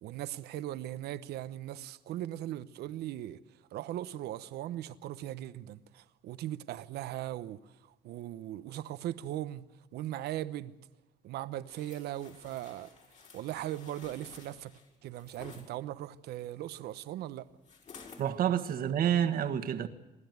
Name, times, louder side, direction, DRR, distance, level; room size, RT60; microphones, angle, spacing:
voice 1, 0.0-3.4 3.7-9.6 9.9-10.8 11.2-12.9 13.3-14.7 15.0-17.5, right 13 dB, 75° right, 0.9 m, -39 dB
sound 1, 11.7-15.7 17.6-18.3 18.8-18.9, left 5 dB, 45° left, 5.1 m, -53 dB
voice 2, 18.2-19.9, right 9 dB, 60° right, 1.6 m, -28 dB
28.0 x 11.5 x 9.4 m
cardioid pair, 110°, 17 cm